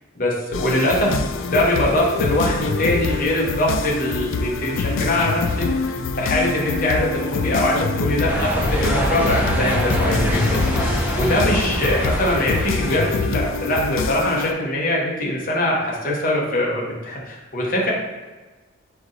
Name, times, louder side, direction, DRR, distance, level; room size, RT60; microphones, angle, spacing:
voice 1, 0.2-1.2 1.5-17.9, left 1 dB, 45° left, -2 dB, 0.9 m, -22 dB
sound 1, 0.5-14.5, left 4 dB, 80° left, 0.3 m, -25 dB
sound 2, 8.3-13.2, equal, 10° right, 0.5 m, -24 dB
4.6 x 3.7 x 2.7 m, 1.3 s
head